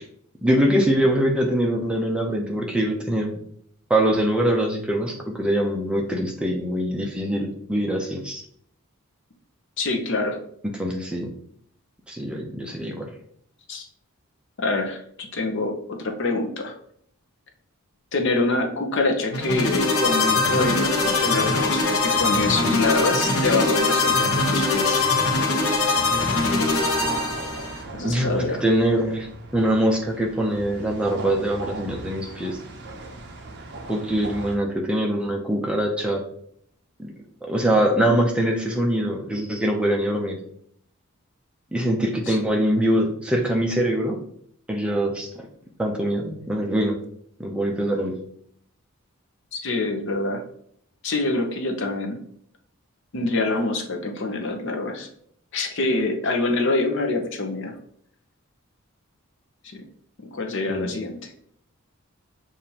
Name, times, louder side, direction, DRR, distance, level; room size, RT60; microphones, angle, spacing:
voice 1, 0.4-3.4 3.9-8.4 10.8-11.3 12.1-13.1 28.0-29.3 29.5-32.6 33.9-36.2 37.0-37.1 37.4-40.4 41.7-44.2 44.7-45.5 45.8-47.0 47.4-48.2 60.7-60.9, right 1 dB, 5° right, 0 dB, 0.5 m, -23 dB
voice 2, 9.8-10.4 13.7-13.9 14.6-16.7 18.1-25.0 27.9-28.6 42.3-42.4 49.5-50.4 51.0-52.2 53.1-55.1 55.5-57.7 59.6-59.8 60.2-61.2, left 2 dB, 55° left, 3 dB, 0.7 m, -25 dB
sound 1, 19.3-27.8, left 3 dB, 85° left, 0.9 m, -22 dB
sound 2, 26.2-34.6, right 2 dB, 50° right, 0.6 m, -39 dB
6.9 x 2.5 x 2.8 m, 0.65 s
head